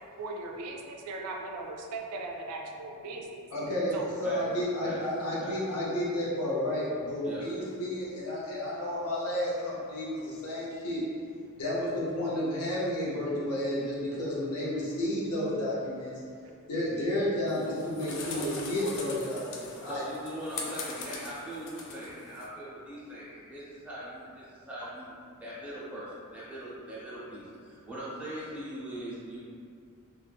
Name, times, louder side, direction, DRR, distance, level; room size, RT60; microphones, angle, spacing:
voice 1, 0.2-3.5 3.9-4.1 18.3-18.9 20.5-20.6, right 2 dB, 80° right, 1 dB, 0.3 m, -38 dB
voice 2, 3.5-3.9 4.2-11.0 11.6-16.1 16.7-20.0, left 1 dB, 80° left, -7 dB, 0.7 m, -31 dB
sound 1, 17.5-22.5, left 3 dB, 60° left, 0.4 m, -41 dB
voice 3, 19.8-29.4, equal, 5° right, -9 dB, 0.5 m, -41 dB
2.2 x 2.1 x 3.1 m, 2.3 s
head